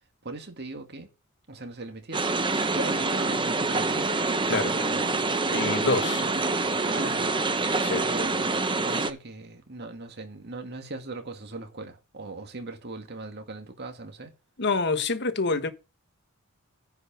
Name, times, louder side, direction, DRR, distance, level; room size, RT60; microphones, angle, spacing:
voice 1, 0.2-1.1 1.5-2.3 2.7-4.1 4.7-5.1 5.6-6.6 6.9-7.4 8.0-8.6 8.8-14.3, right 2 dB, 50° right, 2.1 m, -39 dB
sound 1, 2.1-9.1, right 3 dB, 20° right, 1.0 m, -26 dB
voice 2, 5.5-6.2 7.8-8.0 14.6-15.7, left 3 dB, 55° left, 1.5 m, -26 dB
10.5 x 4.8 x 7.4 m
head